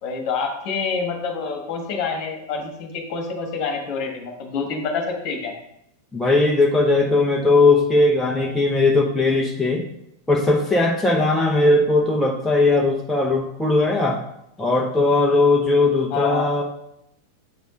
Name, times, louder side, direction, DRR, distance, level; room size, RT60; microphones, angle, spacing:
voice 1, 0.0-5.5 16.1-16.5, left 5 dB, 45° left, 3 dB, 1.5 m, -27 dB
voice 2, 6.1-9.9 10.3-14.2 14.6-16.6, left 2 dB, 5° left, -2 dB, 0.9 m, -18 dB
7.5 x 5.2 x 3.8 m, 0.78 s
figure-of-eight pair, 90°, 0 cm